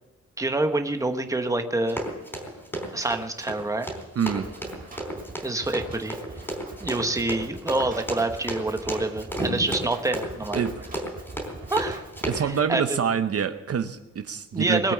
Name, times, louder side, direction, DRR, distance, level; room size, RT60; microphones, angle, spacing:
voice 1, 0.4-2.0 2.9-3.9 5.4-6.2 6.8-10.6 11.7-12.0 12.4-13.1 14.5-14.9, right 2 dB, 10° right, 6 dB, 1.1 m, -27 dB
Run, 1.9-12.6, right 1 dB, 5° left, 3.7 m, -33 dB
voice 2, 4.2-4.5 10.5-10.7 12.3-14.9, right 7 dB, 55° right, 9 dB, 0.7 m, -26 dB
Drum kit, 4.4-12.4, right 3 dB, 30° right, 1.8 m, -43 dB
21.0 x 8.5 x 7.2 m, 1.1 s
wide cardioid pair, 175°, 29 cm